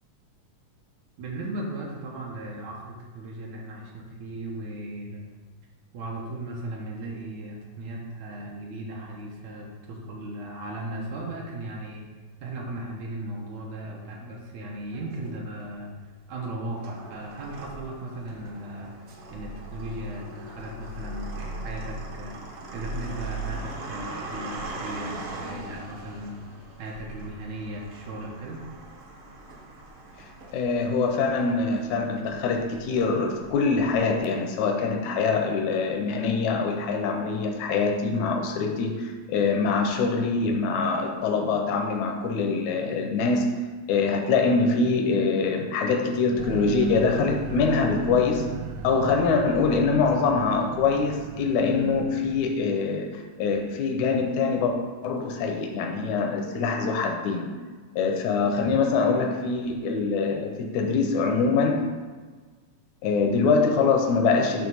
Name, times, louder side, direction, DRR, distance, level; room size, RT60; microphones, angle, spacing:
voice 1, 1.2-5.2 5.9-12.0 12.4-15.9 16.3-19.0 19.3-22.3 22.7-26.3 26.8-28.6, right 1 dB, 75° right, -2 dB, 2.5 m, -36 dB
sound 1, 14.9-15.7 16.4-34.2, right 2 dB, 60° right, 1.7 m, -40 dB
voice 2, 30.5-43.5 43.9-48.5 48.8-54.7 55.0-57.5 58.0-61.9 63.0-64.7, left 4 dB, 80° left, 2 dB, 2.1 m, -24 dB
sound 2, 46.4-52.4, right 5 dB, 90° right, 2.1 m, -36 dB
8.9 x 3.3 x 6.3 m, 1.4 s
omnidirectional pair, 3.3 m